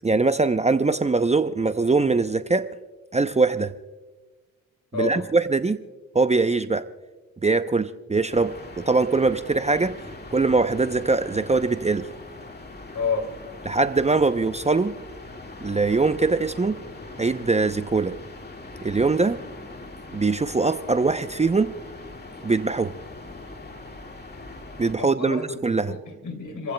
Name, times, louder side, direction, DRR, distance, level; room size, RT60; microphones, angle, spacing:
voice 1, 0.0-2.7 3.1-3.7 4.9-5.8 6.1-6.8 7.4-10.0 10.3-12.1 13.6-14.9 15.6-16.8 17.2-18.2 18.8-19.4 20.1-21.7 22.4-22.9 24.8-26.0, right 3 dB, 20° right, 0.7 m, -22 dB
voice 2, 4.9-5.3 12.9-13.3 25.0-26.7, left 4 dB, 55° left, 3.0 m, -30 dB
sound 1, 8.3-25.0, left 2 dB, 25° left, 2.0 m, -41 dB
29.5 x 15.0 x 2.3 m
supercardioid pair, 60°, 36 cm